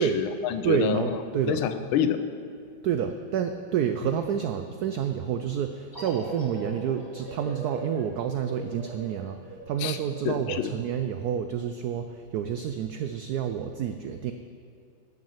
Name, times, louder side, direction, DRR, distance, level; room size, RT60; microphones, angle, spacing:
voice 1, 0.0-1.0 1.5-2.2 9.8-10.0 10.2-10.7, left 9 dB, 85° left, 10 dB, 1.5 m, -27 dB
voice 2, 0.6-1.6 2.8-14.3, right 8 dB, 85° right, 8 dB, 0.8 m, -29 dB
sound 1, 5.9-11.2, right 1 dB, 10° left, 2.5 m, -41 dB
12.5 x 6.1 x 7.3 m, 2.4 s
omnidirectional pair, 2.2 m